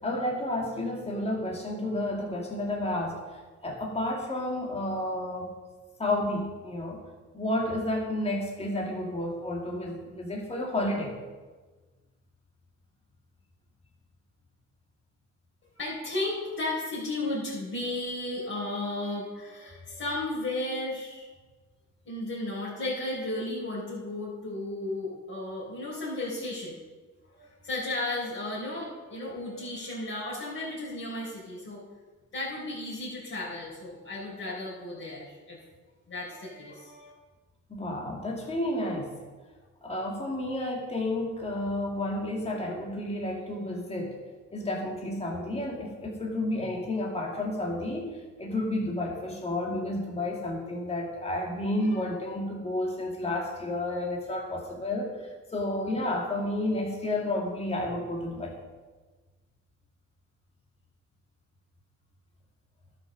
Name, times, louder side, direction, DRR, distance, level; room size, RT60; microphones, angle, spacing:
voice 1, 0.0-5.5 6.0-7.0 7.3-11.2 37.7-39.2 39.8-44.2 44.5-55.2 55.5-58.6, left 1 dB, 20° left, -2 dB, 2.1 m, -31 dB
voice 2, 15.8-21.3 22.0-26.8 27.3-31.8 32.3-35.6 36.1-37.1, left 2 dB, 45° left, -8 dB, 4.1 m, -34 dB
11.5 x 6.0 x 6.3 m, 1.3 s
cardioid pair, 90°, 30 cm